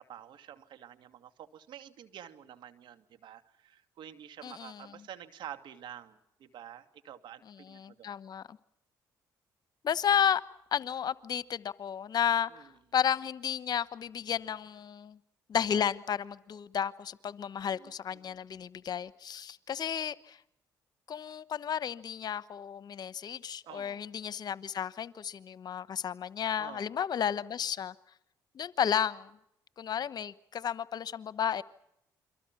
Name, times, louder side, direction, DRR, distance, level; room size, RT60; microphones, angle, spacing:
voice 1, 0.0-8.1 12.5-12.7 17.7-18.4 23.7-24.0 26.6-26.9, right 10 dB, 70° right, 9 dB, 2.3 m, -49 dB
voice 2, 4.4-4.8 7.5-8.6 9.8-10.4 10.7-15.2 15.5-20.4 21.1-27.9 28.5-29.3 29.8-31.6, left 8 dB, 55° left, 17 dB, 1.1 m, -32 dB
29.0 x 23.5 x 6.1 m, 0.77 s
supercardioid pair, 65°, 8 cm